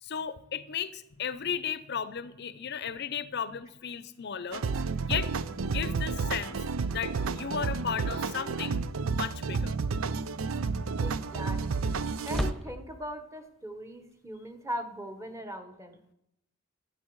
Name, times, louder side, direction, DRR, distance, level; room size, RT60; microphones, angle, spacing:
voice 1, 0.0-4.7 5.0-5.3 5.6-6.6 6.9-8.8 9.1-9.8, left 7 dB, 55° left, 15 dB, 0.6 m, -35 dB
sound 1, 4.5-12.5, right 4 dB, 85° right, 0.5 m, -31 dB
voice 2, 11.0-16.0, equal, 15° right, 7 dB, 1.0 m, -40 dB
sound 2, 12.3-13.1, equal, ahead, 0.7 m, -35 dB
12.0 x 9.2 x 4.6 m, 0.81 s
head